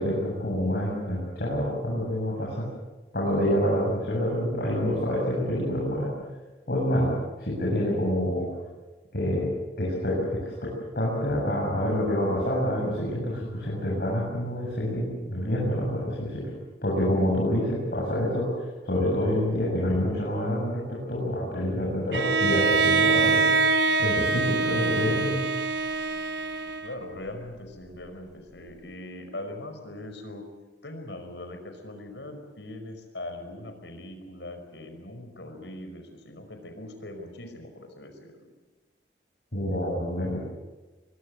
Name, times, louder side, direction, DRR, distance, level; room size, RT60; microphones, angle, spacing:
voice 1, 0.0-2.7 3.1-6.1 6.7-7.1 7.4-8.5 9.1-9.5 9.8-16.5 16.8-23.5 24.0-25.4 39.5-40.4, equal, 60° left, -4 dB, 7.8 m, -27 dB
Bowed string instrument, 22.1-27.1, right 4 dB, 75° right, 1.4 m, -24 dB
voice 2, 26.8-30.4 30.8-38.5, left 1 dB, 85° left, 6 dB, 5.3 m, -41 dB
24.0 x 23.0 x 7.8 m, 1.2 s
head